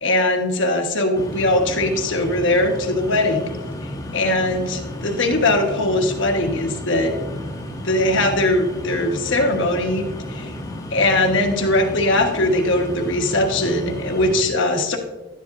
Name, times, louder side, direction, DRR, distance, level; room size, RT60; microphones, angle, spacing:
voice 1, 0.0-3.5 4.1-7.1 7.8-10.5 10.9-15.0, left 1 dB, 60° left, 3 dB, 1.3 m, -20 dB
sound 1, 1.1-14.4, left 1 dB, 15° left, 1.3 m, -32 dB
12.0 x 10.0 x 2.6 m, 1.1 s
head